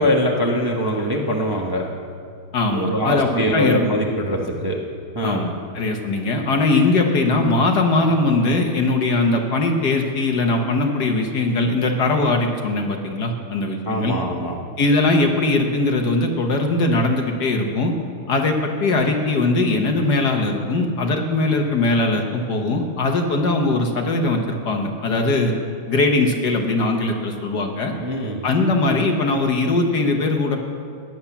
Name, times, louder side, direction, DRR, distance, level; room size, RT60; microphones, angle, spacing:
voice 1, 0.0-1.9 2.7-4.8 5.1-5.5 13.9-14.6 28.0-28.4, equal, 15° right, -1 dB, 0.9 m, -22 dB
voice 2, 2.5-3.8 5.2-14.1 14.8-17.9 18.3-25.5 25.9-27.9 28.4-30.6, left 2 dB, 55° left, 3 dB, 1.7 m, -20 dB
16.0 x 10.0 x 7.2 m, 2.3 s
omnidirectional pair, 2.3 m